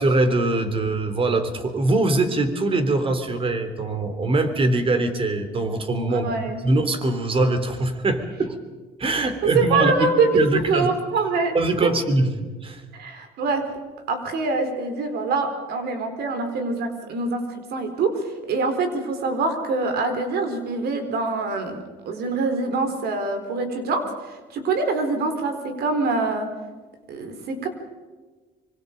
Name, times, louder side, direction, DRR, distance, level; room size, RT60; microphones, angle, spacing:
voice 1, 0.0-6.3 6.6-8.6 9.0-9.9 10.3-10.9 11.5-12.3 12.6-12.8, right 2 dB, 35° right, 9 dB, 3.4 m, -22 dB
voice 2, 6.1-6.6 9.5-11.6 11.8-11.9 12.9-13.7 14.1-26.5 27.1-27.7, right 3 dB, 70° right, 7 dB, 4.4 m, -24 dB
25.5 x 25.0 x 5.3 m, 1.3 s
cardioid pair, 110°, 17 cm